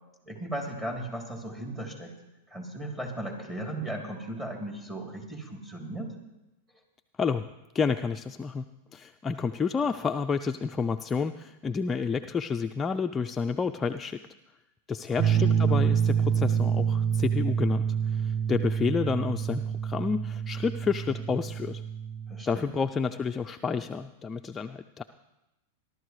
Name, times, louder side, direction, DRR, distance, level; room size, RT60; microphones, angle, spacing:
voice 1, 0.3-2.1 2.5-6.1 15.3-15.4 22.3-22.7, right 1 dB, 15° right, 0 dB, 3.1 m, -36 dB
voice 2, 7.2-7.5 7.7-14.2 14.9-21.8 22.5-25.0, left 5 dB, 20° left, 6 dB, 0.4 m, -30 dB
sound 1, 15.2-22.4, right 8 dB, 35° right, 1.0 m, -27 dB
21.0 x 12.0 x 3.2 m, 0.96 s
hypercardioid pair, 120°, 0 cm